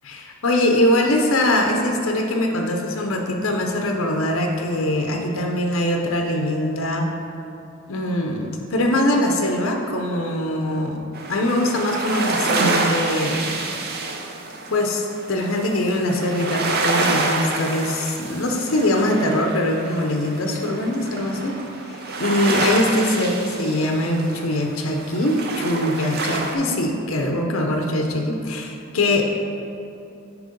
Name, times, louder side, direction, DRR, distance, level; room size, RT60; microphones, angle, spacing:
voice 1, 0.0-7.1 7.9-11.0 11.3-13.6 14.7-21.6 21.8-29.2, left 1 dB, 65° left, 2 dB, 0.6 m, -22 dB
sound 1, 11.1-26.6, right 3 dB, 45° right, 0.5 m, -27 dB
7.5 x 3.0 x 5.1 m, 2.7 s
head